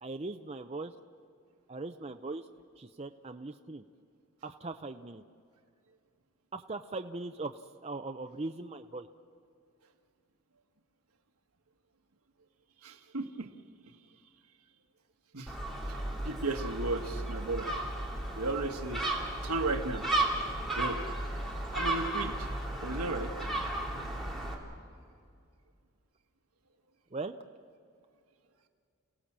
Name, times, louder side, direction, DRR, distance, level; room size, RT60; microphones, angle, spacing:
voice 1, 0.0-0.9 1.7-2.5 2.8-3.8 4.4-5.2 6.5-9.1 27.1-27.3, right 3 dB, 30° right, 7 dB, 0.5 m, -40 dB
voice 2, 12.8-13.5 15.3-15.5 15.9-16.0 16.2-17.7 18.3-19.0 19.4-20.1 20.6-21.0 21.7-22.5 22.8-23.3, right 3 dB, 85° right, 5 dB, 1.5 m, -34 dB
Gull seagull, 15.5-24.5, right 1 dB, ahead, 2.8 m, -34 dB
29.5 x 17.0 x 7.4 m, 2.4 s
head